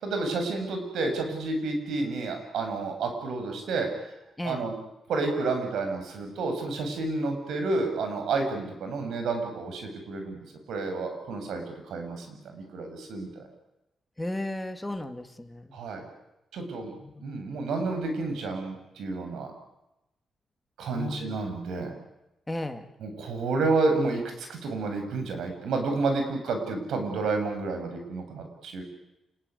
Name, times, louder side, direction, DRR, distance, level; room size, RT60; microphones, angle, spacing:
voice 1, 0.0-3.9 4.4-4.7 5.1-10.4 10.7-13.4 15.7-16.0 16.5-16.9 17.2-19.5 20.8-21.9 23.0-28.8, right 3 dB, 85° right, 5 dB, 7.9 m, -30 dB
voice 2, 4.4-4.7 14.2-15.8 16.9-17.3 20.9-21.4 22.5-22.9, left 1 dB, 10° left, 6 dB, 2.2 m, -35 dB
28.5 x 20.5 x 9.9 m, 0.92 s
cardioid pair, 140°, 0 cm